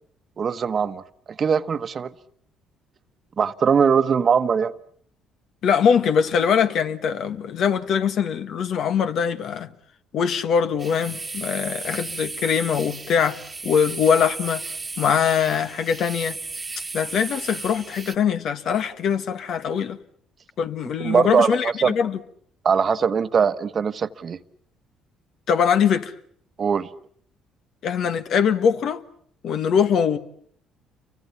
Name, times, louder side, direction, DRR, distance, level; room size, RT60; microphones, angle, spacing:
voice 1, 0.4-1.0 1.4-2.1 3.4-4.7 21.0-22.0 22.6-24.4 26.6-26.9, right 6 dB, 45° right, 1.1 m, -21 dB
voice 2, 5.6-9.7 10.1-14.6 15.0-16.4 16.9-20.0 20.6-22.2 25.5-26.1 27.8-29.0 29.4-30.2, left 7 dB, 65° left, 1.6 m, -22 dB
sound 1, 10.8-18.1, right 3 dB, 25° right, 1.5 m, -35 dB
29.0 x 24.0 x 7.1 m
supercardioid pair, 75°, 0 cm